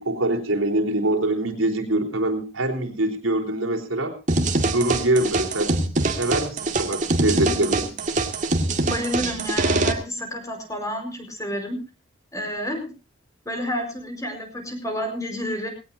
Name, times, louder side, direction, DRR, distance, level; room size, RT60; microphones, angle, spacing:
voice 1, 0.0-4.1 4.6-5.7 6.2-7.9, right 1 dB, 90° right, 3 dB, 3.9 m, -24 dB
sound 1, 4.3-9.9, right 2 dB, 40° right, 2.1 m, -23 dB
voice 2, 7.3-7.7 8.8-11.8 12.3-12.9 13.4-15.7, equal, 15° left, 5 dB, 4.8 m, -30 dB
20.0 x 17.5 x 2.7 m, 0.30 s
head